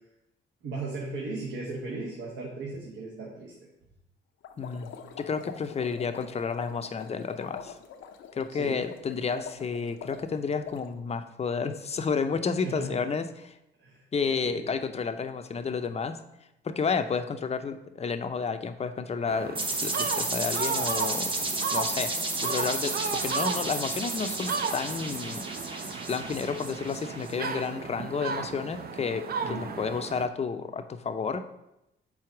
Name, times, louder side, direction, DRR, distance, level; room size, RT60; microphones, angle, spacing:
voice 1, 0.6-3.5 8.5-8.8 12.6-13.1 13.8-14.7 29.4-29.8, right 3 dB, 70° right, -2 dB, 1.2 m, -37 dB
sound 1, 4.4-10.9, left 8 dB, 80° left, 0.6 m, -44 dB
voice 2, 4.6-4.9 5.2-7.8 8.3-13.6 14.1-16.2 16.6-22.1 22.4-22.9 23.2-25.4 25.8-31.4, left 5 dB, 30° left, 8 dB, 0.6 m, -31 dB
sound 2, 19.3-30.3, right 6 dB, 50° right, 0.6 m, -35 dB
sound 3, 19.5-27.3, right 2 dB, 25° right, 1.0 m, -32 dB
4.7 x 4.2 x 5.9 m, 0.87 s
cardioid pair, 90°, 20 cm